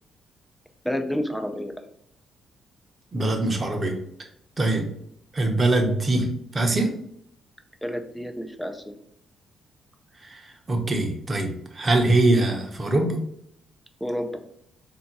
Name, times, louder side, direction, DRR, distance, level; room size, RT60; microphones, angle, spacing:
voice 1, 0.8-1.7 7.8-8.8 14.0-14.3, equal, 5° left, 6 dB, 0.5 m, -29 dB
voice 2, 3.1-4.0 4.6-4.8 5.3-6.3 6.5-6.9 10.7-13.1, right 2 dB, 30° right, 3 dB, 0.9 m, -22 dB
3.5 x 2.7 x 4.5 m, 0.72 s
cardioid pair, 90°, 0 cm